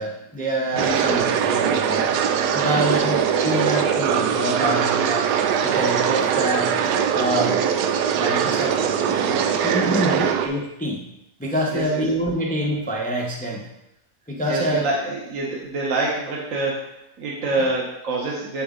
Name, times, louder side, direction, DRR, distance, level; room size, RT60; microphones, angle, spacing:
voice 1, 0.0-5.3 5.6-6.7 7.1-11.1 11.4-13.7 14.3-14.8, right 1 dB, 10° left, -1 dB, 0.5 m, -26 dB
voice 2, 0.7-1.1 2.6-3.0 9.8-10.2 11.7-12.0 14.4-18.6, right 2 dB, 55° right, -3 dB, 1.4 m, -27 dB
sound 1, 0.8-10.5, right 8 dB, 85° right, 1.2 m, -21 dB
8.3 x 4.0 x 3.8 m, 0.86 s
omnidirectional pair, 1.7 m